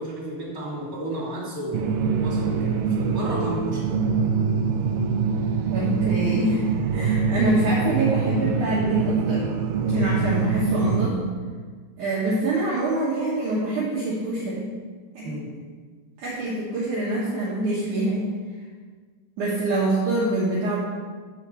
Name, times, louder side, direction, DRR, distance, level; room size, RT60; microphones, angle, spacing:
voice 1, 0.0-3.9 15.2-15.5, equal, 25° right, -6 dB, 2.6 m, -32 dB
sound 1, 1.7-11.1, right 5 dB, 85° right, 2.0 m, -24 dB
voice 2, 5.7-6.7 6.9-9.4 9.8-11.2 12.0-14.7 15.1-15.3 16.2-18.3 19.4-20.8, right 1 dB, 60° right, -7 dB, 2.4 m, -25 dB
6.4 x 5.8 x 6.8 m, 1.5 s
omnidirectional pair, 4.5 m